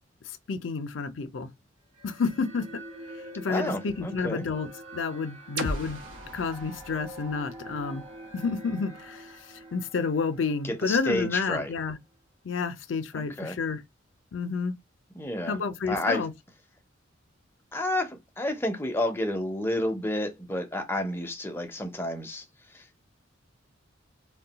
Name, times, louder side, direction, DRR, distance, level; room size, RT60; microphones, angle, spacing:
voice 1, 0.5-1.5 2.0-2.7 3.4-6.0 6.3-8.0 8.3-9.3 9.7-12.0 12.4-13.8 14.3-14.7 15.5-16.3, left 4 dB, 70° left, 0.5 m, -30 dB
sound 1, 1.9-11.5, right 1 dB, 35° right, 0.6 m, -46 dB
voice 2, 3.5-4.4 10.6-11.7 13.1-13.6 15.1-15.6 15.9-16.3 17.7-22.4 22.7-23.1, left 1 dB, 10° left, 0.5 m, -30 dB
sound 2, 5.6-9.4, right 1 dB, 80° right, 0.9 m, -38 dB
2.3 x 2.1 x 3.9 m
head